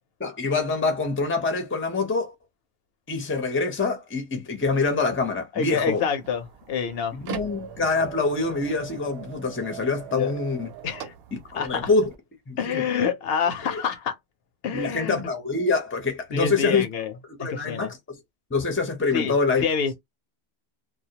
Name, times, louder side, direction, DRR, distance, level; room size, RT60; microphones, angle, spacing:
voice 1, 0.2-2.3 3.1-6.0 7.1-10.7 11.5-12.1 12.5-12.9 13.6-13.8 14.7-16.9 17.4-18.2 18.5-19.6, left 4 dB, 15° left, 0.5 m, -25 dB
voice 2, 5.5-7.2 10.1-10.3 10.8-11.1 11.5-11.9 12.6-14.2 14.6-15.3 16.3-17.1 17.4-17.9 19.1-20.0, left 6 dB, 70° left, 0.8 m, -27 dB
sound 1, 6.1-12.1, right 9 dB, 75° right, 0.8 m, -40 dB
2.2 x 2.1 x 2.7 m
omnidirectional pair, 1.1 m